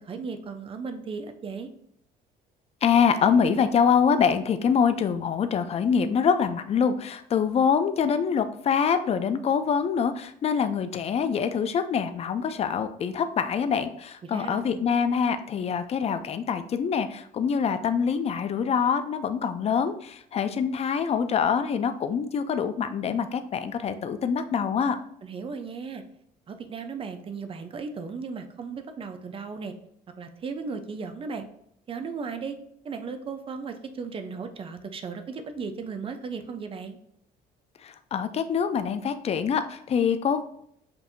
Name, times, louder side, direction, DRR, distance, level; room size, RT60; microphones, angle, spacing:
voice 1, 0.0-1.7 14.2-14.8 25.2-26.0 26.5-29.7 30.2-31.4 31.9-32.6 32.8-37.0, right 5 dB, 35° right, 7 dB, 0.6 m, -36 dB
voice 2, 2.8-25.0 37.8-40.4, left 6 dB, 40° left, 10 dB, 0.5 m, -25 dB
6.9 x 2.7 x 2.6 m, 0.70 s
cardioid pair, 110°, 17 cm